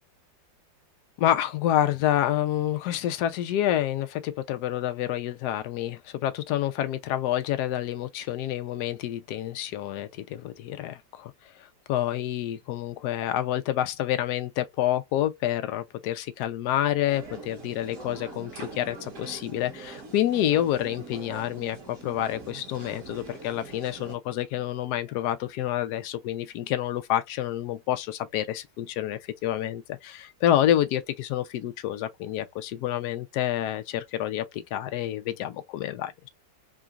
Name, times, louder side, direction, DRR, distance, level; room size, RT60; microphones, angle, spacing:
voice 1, 1.2-11.3 11.6-36.3, left 12 dB, 70° left, 1.0 m, -28 dB
sound 1, 17.1-24.2, right 4 dB, 45° right, 1.5 m, -43 dB
3.8 x 2.3 x 2.4 m
omnidirectional pair, 2.1 m